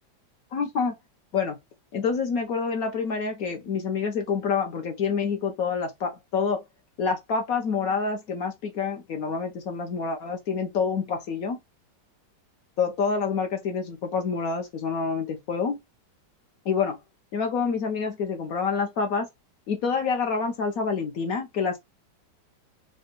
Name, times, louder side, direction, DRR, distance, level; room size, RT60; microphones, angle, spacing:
voice 1, 0.5-0.9 1.3-1.6 1.9-6.6 7.0-11.6 12.8-15.8 16.7-17.0 17.3-19.3 19.7-21.8, left 5 dB, 70° left, 0.9 m, -27 dB
3.7 x 2.2 x 3.8 m
omnidirectional pair, 2.2 m